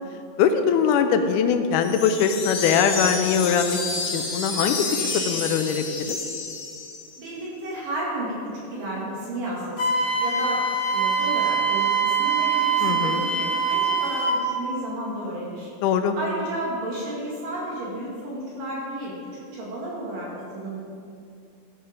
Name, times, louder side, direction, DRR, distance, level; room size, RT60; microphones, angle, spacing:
voice 1, 0.4-6.2 12.8-13.2 15.8-16.1, left 7 dB, 85° left, 7 dB, 1.8 m, -22 dB
sound 1, 1.8-7.2, left 4 dB, 60° left, 2.8 m, -30 dB
voice 2, 7.2-10.6 10.9-15.7 16.1-20.8, right 1 dB, 65° right, -5 dB, 3.5 m, -32 dB
Wind instrument woodwind instrument, 9.8-14.4, right 4 dB, 45° left, 2.6 m, -23 dB
13.0 x 7.9 x 5.1 m, 2.4 s
omnidirectional pair, 4.4 m